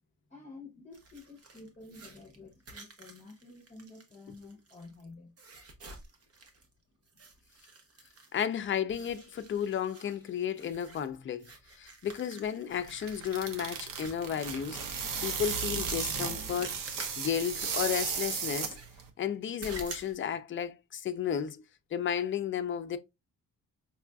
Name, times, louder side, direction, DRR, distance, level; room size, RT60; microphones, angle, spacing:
voice 1, 0.3-5.3, left 3 dB, 20° left, 0.8 m, -50 dB
sound 1, 0.9-5.0 5.4-6.7 7.1-8.6 8.9-14.9 15.9-19.0 19.6-20.1, right 3 dB, 45° right, 0.9 m, -49 dB
voice 2, 8.3-11.5 11.8-16.8 17.2-18.8 19.2-21.6 21.9-23.0, left 8 dB, 35° left, 0.4 m, -33 dB
sound 2, 12.7-19.1, right 6 dB, 75° right, 0.7 m, -35 dB
5.4 x 2.4 x 2.2 m
cardioid pair, 120°, 33 cm